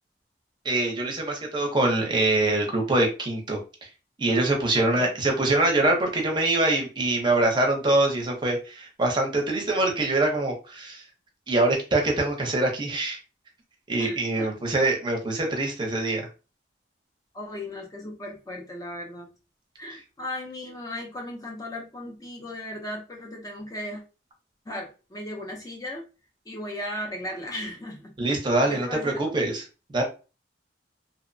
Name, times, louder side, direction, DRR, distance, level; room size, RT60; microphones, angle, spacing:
voice 1, 0.6-3.9 4.2-11.1 11.5-13.2 13.9-16.2 19.9-20.0 28.2-29.6 29.9-30.0, right 2 dB, 25° right, 1 dB, 0.6 m, -24 dB
voice 2, 4.8-5.1 14.0-14.5 17.3-19.3 19.8-24.0 24.7-26.0 26.5-28.1 28.7-29.3, left 1 dB, 20° left, 0 dB, 0.4 m, -36 dB
2.8 x 2.0 x 2.5 m, 0.33 s
head